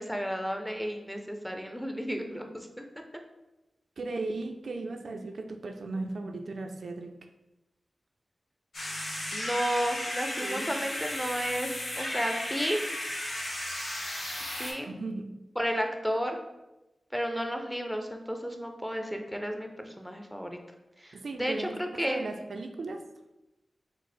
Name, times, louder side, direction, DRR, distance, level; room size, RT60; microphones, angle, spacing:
voice 1, 0.0-2.8 9.3-11.7 12.0-12.8 14.6-14.9 15.6-16.4 17.1-20.6 21.0-22.4, equal, ahead, 4 dB, 0.5 m, -32 dB
voice 2, 4.0-7.2 10.4-10.7 14.8-15.3 21.1-23.0, right 3 dB, 75° right, 5 dB, 0.3 m, -36 dB
sound 1, 8.7-14.7, left 1 dB, 90° left, 1.3 m, -34 dB
4.8 x 2.0 x 4.1 m, 0.99 s
wide cardioid pair, 85°, 0 cm